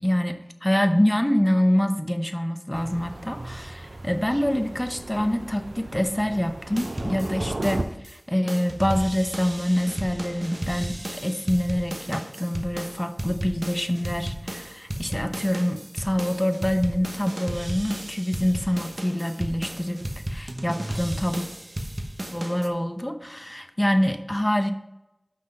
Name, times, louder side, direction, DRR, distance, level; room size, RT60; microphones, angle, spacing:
voice 1, 0.0-21.5 22.3-24.7, equal, 15° left, 7 dB, 0.8 m, -25 dB
Thunder, 2.7-7.8, right 2 dB, 75° right, 0.6 m, -36 dB
sound 1, 6.8-8.2 8.5-22.7, right 1 dB, 45° right, 1.0 m, -34 dB
6.1 x 5.9 x 5.5 m, 0.92 s
wide cardioid pair, 45°, 0 cm